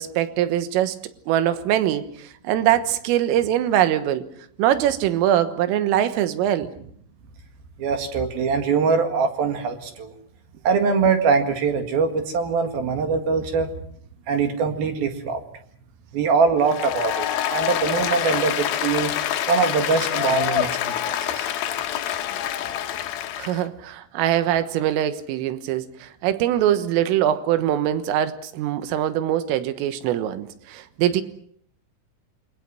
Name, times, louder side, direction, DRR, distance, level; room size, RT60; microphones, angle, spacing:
voice 1, 0.0-4.3 4.6-6.7 23.4-31.2, right 11 dB, 80° right, 11 dB, 3.8 m, -22 dB
voice 2, 7.8-10.1 10.6-13.7 14.3-15.4 16.1-19.1 19.5-21.5, right 5 dB, 60° right, 6 dB, 3.1 m, -22 dB
Applause, 16.6-23.6, left 11 dB, 75° left, 2.2 m, -26 dB
28.0 x 24.0 x 5.9 m, 0.63 s
omnidirectional pair, 6.0 m